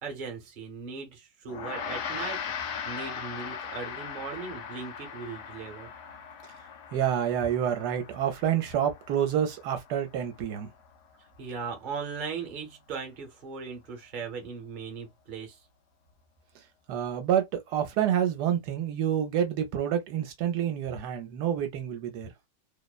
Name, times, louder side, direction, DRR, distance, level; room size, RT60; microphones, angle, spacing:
voice 1, 0.0-5.9 11.2-15.6, right 5 dB, 40° right, 0.8 m, -38 dB
Gong, 1.5-11.1, left 7 dB, 75° left, 1.1 m, -39 dB
voice 2, 6.9-10.7 16.9-22.3, right 9 dB, 75° right, 1.1 m, -28 dB
2.9 x 2.1 x 2.2 m
omnidirectional pair, 1.8 m